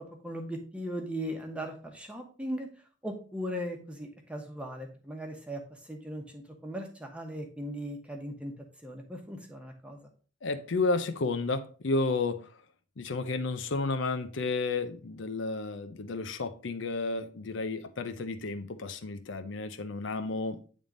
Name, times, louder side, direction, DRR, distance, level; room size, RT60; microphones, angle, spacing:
voice 1, 0.2-2.7 3.0-8.5 8.8-10.0, equal, 5° right, 1.0 m, -38 dB
voice 2, 10.4-12.5 13.0-20.6, left 3 dB, 80° left, 0.6 m, -32 dB
8.7 x 3.6 x 3.8 m
head